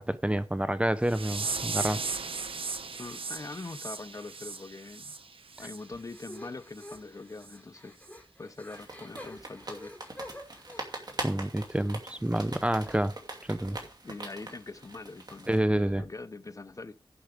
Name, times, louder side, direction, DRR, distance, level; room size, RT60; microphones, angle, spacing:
voice 1, 0.0-2.0 11.2-13.1 13.5-13.8 15.5-16.0, right 1 dB, 15° right, 0.6 m, -28 dB
sound 1, 1.0-5.8 6.1-6.4 6.8-7.0 7.4-7.6 8.1-8.2, right 4 dB, 85° right, 0.9 m, -37 dB
voice 2, 3.0-5.1 5.6-8.0 8.4-9.9 10.8-11.2 14.0-17.0, left 3 dB, 40° left, 0.5 m, -43 dB
sound 2, 5.8-10.8, left 1 dB, 15° left, 3.7 m, -48 dB
sound 3, 8.7-15.6, right 2 dB, 50° right, 2.6 m, -42 dB
11.0 x 7.1 x 4.9 m
wide cardioid pair, 90°, 9 cm